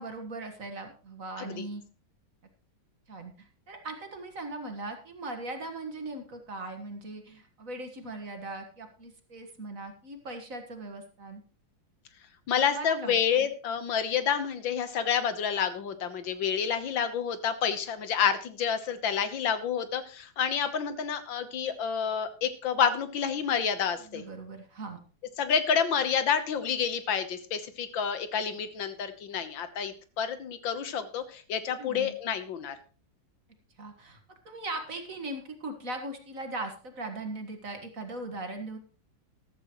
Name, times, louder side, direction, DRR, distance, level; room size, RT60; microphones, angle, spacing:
voice 1, 0.0-1.8 3.1-11.4 12.5-13.5 24.1-25.0 31.8-32.1 33.8-38.8, right 2 dB, 45° right, 5 dB, 1.9 m, -39 dB
voice 2, 12.5-24.2 25.4-32.8, left 7 dB, 75° left, 10 dB, 1.8 m, -29 dB
14.0 x 13.0 x 3.1 m, 0.38 s
omnidirectional pair, 2.1 m